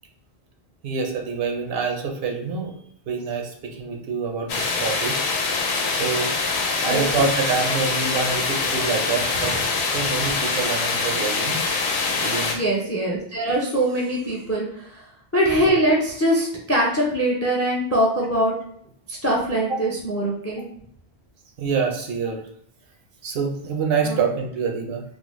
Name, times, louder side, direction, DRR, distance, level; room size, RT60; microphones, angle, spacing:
voice 1, 0.8-2.7 3.1-5.2 6.0-9.6 9.9-11.6 12.2-12.6 21.6-22.4 23.2-25.0, right 5 dB, 70° right, 2 dB, 0.8 m, -26 dB
sound 1, 4.5-12.6, left 4 dB, 80° left, 0.9 m, -24 dB
voice 2, 12.5-15.0 15.3-18.5 19.1-20.6 24.0-24.2, right 1 dB, 25° left, -3 dB, 0.3 m, -22 dB
3.3 x 2.0 x 3.0 m, 0.66 s
omnidirectional pair, 1.1 m